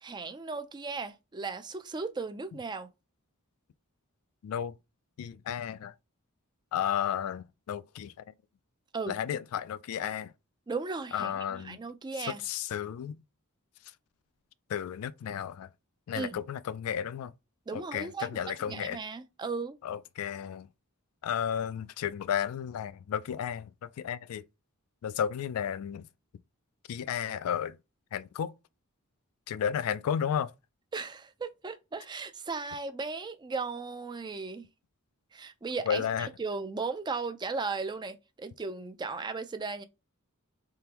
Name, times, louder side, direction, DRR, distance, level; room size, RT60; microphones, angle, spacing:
voice 1, 0.0-2.9 8.9-9.2 10.7-12.4 16.1-16.4 17.7-18.4 18.7-19.8 30.9-34.7 35.3-39.8, right 4 dB, 20° right, 0.4 m, -36 dB
voice 2, 4.4-4.7 5.2-5.9 6.7-8.2 9.1-10.3 11.1-11.8 12.2-13.2 14.7-15.7 16.1-17.3 17.7-19.0 19.8-20.7 21.2-24.4 25.0-26.1 26.9-27.8 28.1-28.5 29.5-30.5 35.9-36.3, left 8 dB, 75° left, 0.3 m, -33 dB
3.6 x 3.3 x 2.9 m
head